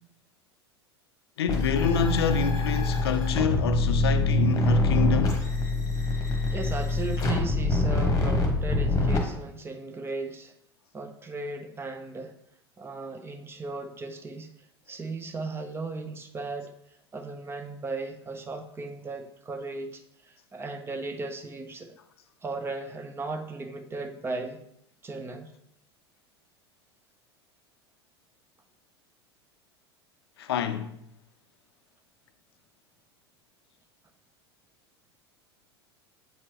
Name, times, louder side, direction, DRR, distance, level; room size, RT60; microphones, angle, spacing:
voice 1, 1.4-5.4 30.4-30.9, left 7 dB, 65° left, 0.5 m, -28 dB
sound 1, 1.5-9.2, left 2 dB, 25° left, 1.2 m, -25 dB
voice 2, 6.1-10.5 10.9-12.3 12.8-14.5 14.9-16.7 17.1-21.9 22.4-24.6 25.0-25.5, right 3 dB, 15° right, 0.7 m, -36 dB
7.9 x 4.4 x 2.9 m
figure-of-eight pair, 80°, 14 cm